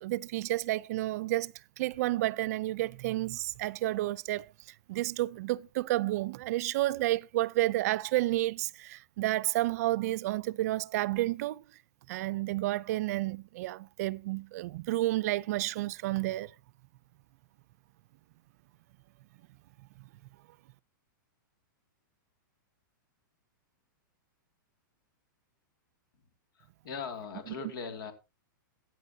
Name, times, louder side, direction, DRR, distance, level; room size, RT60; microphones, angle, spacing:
voice 1, 0.0-4.5 4.9-11.6 12.1-16.5, right 16 dB, 50° right, 0.5 m, -31 dB
voice 2, 26.5-28.1, left 6 dB, 75° left, 2.3 m, -40 dB
15.5 x 9.2 x 2.7 m
supercardioid pair, 160°, 11 cm